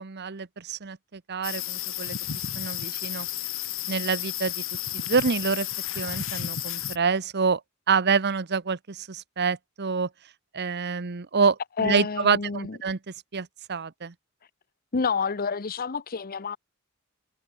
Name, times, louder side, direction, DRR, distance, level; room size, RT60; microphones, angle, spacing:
voice 1, 0.0-2.2 2.5-3.3 3.9-4.6 4.9-5.7 5.9-7.6 7.9-10.1 10.5-13.0 13.3-14.1, right 5 dB, 50° right, 0.9 m, -27 dB
sound 1, 1.4-7.0, left 11 dB, 65° left, 3.9 m, -32 dB
voice 2, 11.8-12.8 14.9-16.6, left 5 dB, 45° left, 0.8 m, -28 dB
head